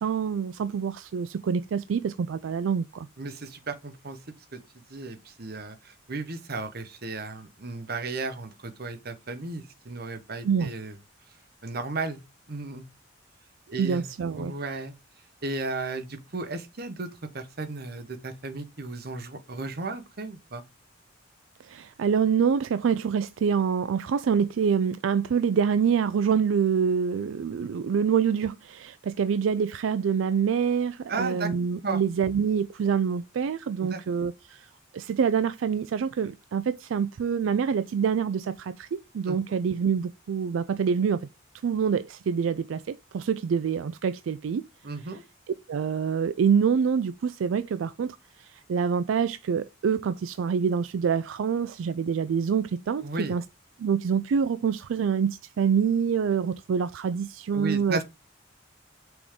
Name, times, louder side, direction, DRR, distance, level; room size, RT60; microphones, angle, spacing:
voice 1, 0.0-3.1 10.4-10.7 13.8-14.5 21.6-41.3 41.6-44.6 45.7-53.4 53.8-58.0, right 6 dB, 80° right, 0.4 m, -26 dB
voice 2, 3.2-4.2 4.5-4.6 4.9-10.9 11.6-12.2 12.5-12.8 13.7-14.0 14.3-14.9 15.4-17.1 17.3-20.6 31.1-31.5 31.8-32.0 33.8-34.0 39.3-39.4 44.8-45.2 53.0-53.3 57.5-58.0, right 3 dB, 50° right, 1.0 m, -34 dB
6.0 x 3.6 x 4.9 m
head